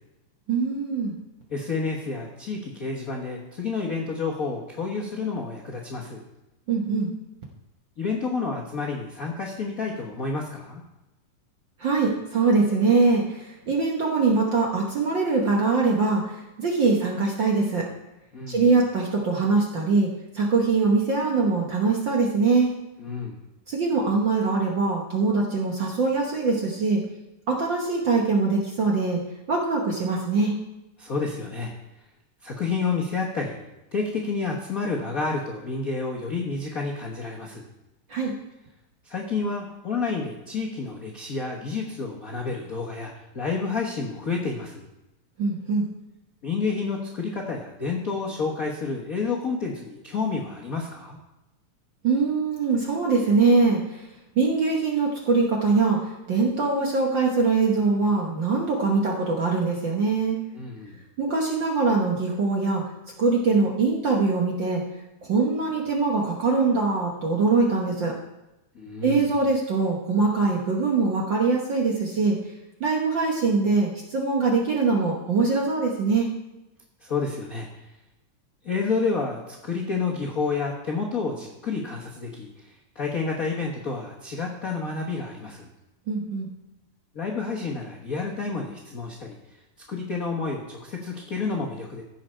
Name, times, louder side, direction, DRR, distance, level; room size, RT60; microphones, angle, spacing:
voice 1, 0.5-1.1 6.7-7.1 11.8-17.9 18.5-20.1 20.3-22.7 23.7-27.0 27.5-29.2 29.5-30.5 38.1-38.3 45.4-45.8 52.0-54.1 54.3-60.4 61.2-62.8 63.2-64.8 65.2-68.1 69.0-72.4 72.8-76.3 86.1-86.5, right 4 dB, 55° right, -1 dB, 1.3 m, -23 dB
voice 2, 1.5-6.2 8.0-10.8 18.3-18.7 23.0-23.4 31.0-31.7 32.4-33.6 33.9-37.6 39.0-44.8 46.4-51.2 60.5-61.0 68.7-69.3 77.0-77.7 78.6-85.7 87.1-89.4 89.9-92.0, left 4 dB, 55° left, -3 dB, 1.0 m, -29 dB
15.5 x 6.3 x 4.4 m, 0.97 s
omnidirectional pair, 3.4 m